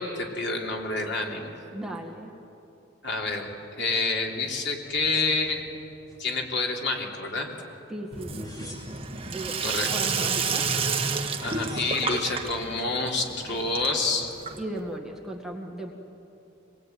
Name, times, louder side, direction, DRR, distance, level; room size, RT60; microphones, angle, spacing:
voice 1, 0.0-1.5 3.0-3.5 3.8-5.6 6.2-7.5 9.6-10.2 11.4-14.3, left 3 dB, 60° left, 0 dB, 3.5 m, -28 dB
voice 2, 1.7-2.3 7.9-8.8 9.3-9.6 9.9-10.7 14.6-15.9, right 1 dB, ahead, 0 dB, 2.0 m, -36 dB
sound 1, 4.9-6.2 6.7-7.4 8.2-9.3 10.8-10.9 11.1-12.1 12.8-13.3, left 1 dB, 20° left, 3.8 m, -50 dB
Sink (filling or washing), 8.1-14.9, right 5 dB, 30° right, 1.4 m, -30 dB
25.5 x 20.0 x 9.5 m, 2.8 s
head